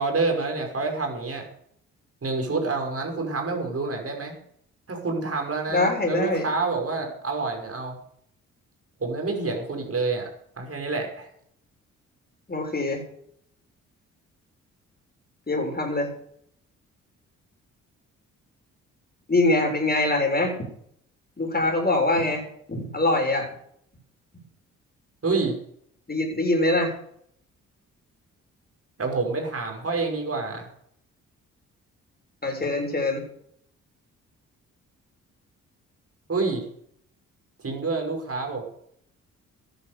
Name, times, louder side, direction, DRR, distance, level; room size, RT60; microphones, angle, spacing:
voice 1, 0.0-1.5 2.2-4.4 4.9-8.0 9.0-10.3 10.6-11.3 25.2-25.5 29.0-30.7 36.3-36.6 37.6-38.6, right 3 dB, 40° right, 2 dB, 5.8 m, -27 dB
voice 2, 5.7-6.5 12.5-13.0 15.5-16.1 19.3-20.6 21.4-22.4 22.7-23.5 26.1-26.9 32.4-33.2, left 2 dB, 25° left, 2 dB, 6.8 m, -23 dB
13.5 x 11.0 x 6.8 m, 0.69 s
hypercardioid pair, 45°, 36 cm